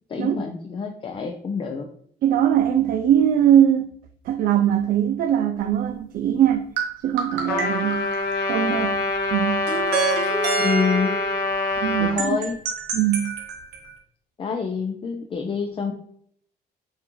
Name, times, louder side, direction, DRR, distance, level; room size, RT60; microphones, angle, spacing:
voice 1, 0.1-1.9 10.6-11.2 12.0-12.6 14.4-15.9, left 5 dB, 30° left, 0.5 m, -27 dB
voice 2, 2.2-3.9 4.3-6.7 7.0-8.1 8.5-9.0 9.3-9.6 11.8-12.4 12.9-13.3, right 10 dB, 60° right, 0.4 m, -21 dB
sound 1, 6.8-8.7 9.7-11.3 12.2-13.9, right 5 dB, 90° right, 1.3 m, -27 dB
Trumpet, 7.5-12.2, left 3 dB, 70° left, 0.9 m, -25 dB
7.1 x 2.4 x 3.0 m
cardioid pair, 110°, 17 cm